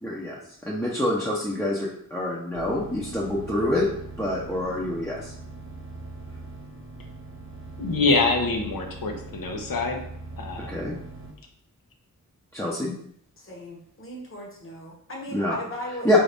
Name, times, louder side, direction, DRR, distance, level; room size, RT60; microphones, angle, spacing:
voice 1, 0.0-3.9 4.2-5.3 10.6-11.0 12.5-13.0 15.3-15.6 16.0-16.2, left 1 dB, 10° left, -6 dB, 0.6 m, -26 dB
sound 1, 2.6-11.3, right 2 dB, 35° right, 0.7 m, -41 dB
voice 2, 7.8-10.0 10.4-10.8, left 3 dB, 75° left, 3 dB, 0.8 m, -25 dB
voice 3, 13.4-16.1, equal, 35° left, -2 dB, 1.0 m, -37 dB
3.9 x 2.7 x 3.4 m, 0.68 s
wide cardioid pair, 80°, 35 cm